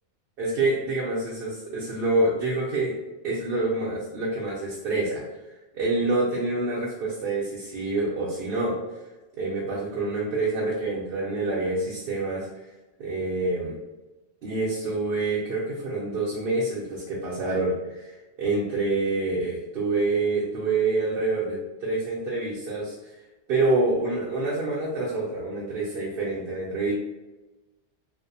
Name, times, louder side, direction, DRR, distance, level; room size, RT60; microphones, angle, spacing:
voice 1, 0.4-2.9 3.2-5.2 5.7-8.8 9.4-12.5 13.0-13.8 14.4-23.2 23.5-26.9, right 2 dB, 65° right, -6 dB, 0.7 m, -27 dB
2.5 x 2.0 x 2.6 m, 1.1 s
omnidirectional pair, 1.2 m